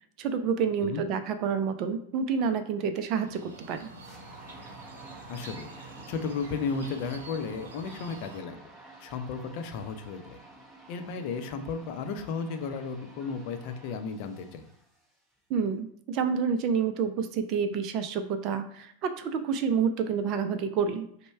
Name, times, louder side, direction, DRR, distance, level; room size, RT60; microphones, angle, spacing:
voice 1, 0.2-3.9 15.5-21.1, right 6 dB, 40° right, 9 dB, 0.4 m, -28 dB
sound 1, 3.1-8.4, right 3 dB, 60° right, 0.9 m, -47 dB
sound 2, 4.0-15.3, right 2 dB, 5° right, 1.0 m, -51 dB
voice 2, 5.3-8.6 9.0-10.4 10.9-14.6, left 5 dB, 45° left, 7 dB, 0.6 m, -34 dB
5.1 x 2.2 x 4.5 m, 0.67 s
figure-of-eight pair, 90°, 0 cm